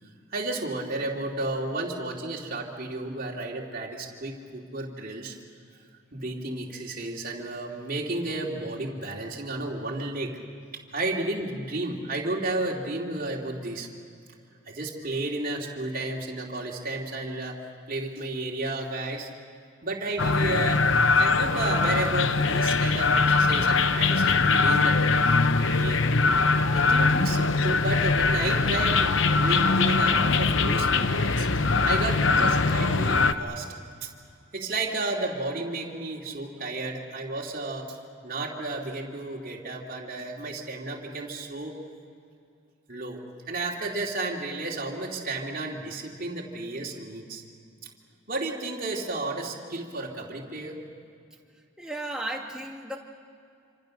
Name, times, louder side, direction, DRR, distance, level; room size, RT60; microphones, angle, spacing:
voice 1, 0.3-5.3 6.1-10.4 10.9-13.9 14.7-17.6 17.9-19.3 19.8-20.8 21.2-25.1 25.6-26.0 26.7-31.5 31.8-33.7 34.0-34.1 34.5-38.0 38.2-41.8 42.9-43.2 43.5-47.4 48.3-50.8, right 2 dB, 45° right, -2 dB, 2.8 m, -32 dB
sound 1, 20.2-33.3, left 4 dB, 70° left, 0.9 m, -22 dB
voice 2, 51.8-53.0, right 1 dB, 5° right, 0 dB, 2.2 m, -34 dB
27.0 x 26.5 x 6.6 m, 2.3 s
head